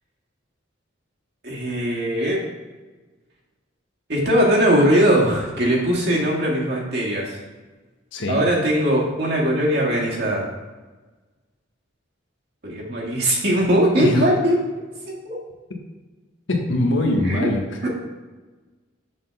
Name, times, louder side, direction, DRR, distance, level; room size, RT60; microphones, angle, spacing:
voice 1, 1.4-2.4 4.1-7.4 8.3-10.5 12.6-14.6 15.1-15.4 17.2-17.5 17.8-17.9, equal, 55° right, -3 dB, 1.7 m, -20 dB
voice 2, 8.1-8.5 14.0-14.3 16.5-17.6, left 1 dB, 75° left, 2 dB, 1.2 m, -22 dB
7.4 x 4.0 x 5.7 m, 1.3 s
head